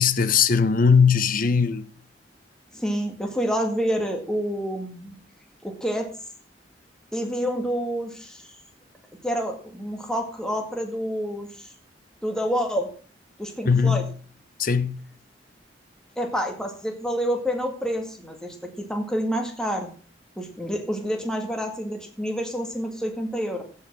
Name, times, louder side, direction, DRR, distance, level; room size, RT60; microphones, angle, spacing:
voice 1, 0.0-1.8 13.6-14.1 14.6-15.0, left 6 dB, 50° left, 0.8 m, -19 dB
voice 2, 2.7-5.2 5.6-6.1 7.1-8.4 9.2-11.7 12.2-12.9 13.4-14.0 16.2-19.9 20.4-23.6, equal, 5° left, 2.0 m, -28 dB
15.0 x 5.6 x 6.1 m
head